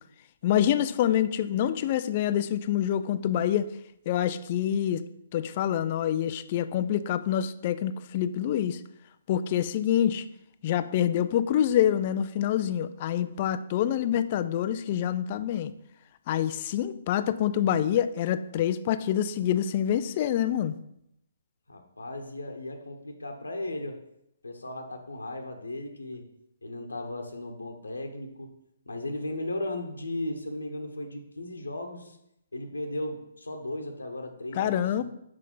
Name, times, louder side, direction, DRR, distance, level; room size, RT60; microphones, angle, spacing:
voice 1, 0.4-3.7 4.1-5.1 5.3-8.8 9.3-10.2 10.6-15.7 16.3-20.8 34.6-35.0, left 10 dB, 35° left, 13 dB, 0.4 m, -26 dB
voice 2, 21.7-24.0 24.4-26.3 26.6-28.5 28.9-32.2 32.5-35.0, left 1 dB, 75° left, 3 dB, 1.2 m, -36 dB
6.5 x 5.3 x 5.5 m, 0.78 s
figure-of-eight pair, 130°, 0 cm